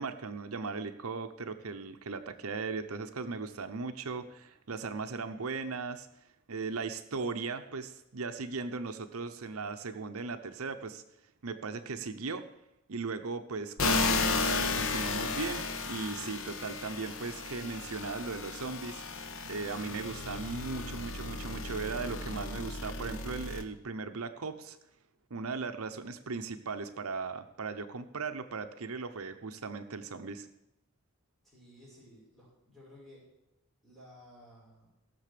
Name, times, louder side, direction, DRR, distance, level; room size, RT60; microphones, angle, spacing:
voice 1, 0.0-6.1 6.5-11.0 11.4-12.4 12.9-24.8 25.3-30.5, right 4 dB, 70° right, 9 dB, 0.8 m, -38 dB
sound 1, 13.8-23.6, left 3 dB, 60° left, 1.3 m, -34 dB
voice 2, 31.4-33.2 33.8-34.9, left 1 dB, ahead, -6 dB, 5.9 m, -55 dB
17.0 x 6.7 x 6.8 m, 0.88 s
head